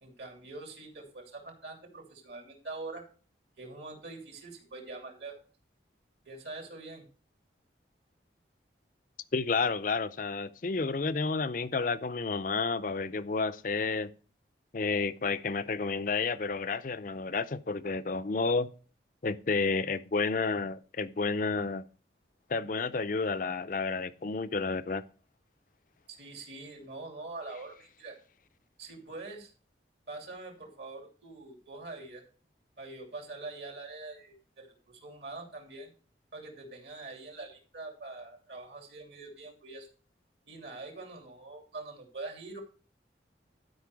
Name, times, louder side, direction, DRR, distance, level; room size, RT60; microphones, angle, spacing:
voice 1, 0.0-3.0 3.6-5.4 6.2-7.1 26.1-28.2 28.8-29.5 30.1-32.3 32.8-35.9 36.3-39.9 40.5-42.6, right 3 dB, 65° right, 2.8 m, -44 dB
voice 2, 9.3-14.1 14.7-18.7 19.2-21.8 22.5-25.0, left 4 dB, 45° left, 0.5 m, -31 dB
12.0 x 5.2 x 4.8 m
head